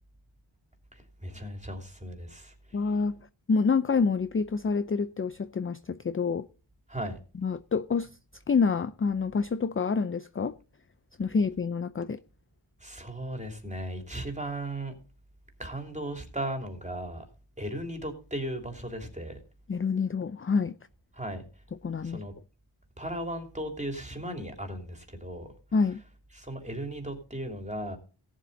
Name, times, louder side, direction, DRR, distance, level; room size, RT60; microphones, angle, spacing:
voice 1, 0.9-2.5 6.9-7.2 12.8-14.9 15.6-17.2 17.6-19.4 21.1-21.4 22.0-22.3 23.0-25.5 26.3-28.0, right 1 dB, 15° right, 3.0 m, -36 dB
voice 2, 2.7-3.2 3.5-6.5 7.4-8.1 8.5-10.5 11.2-12.2 19.7-20.8 21.8-22.2 25.7-26.0, left 5 dB, 25° left, 0.5 m, -27 dB
17.0 x 7.6 x 4.0 m
wide cardioid pair, 70°, 50 cm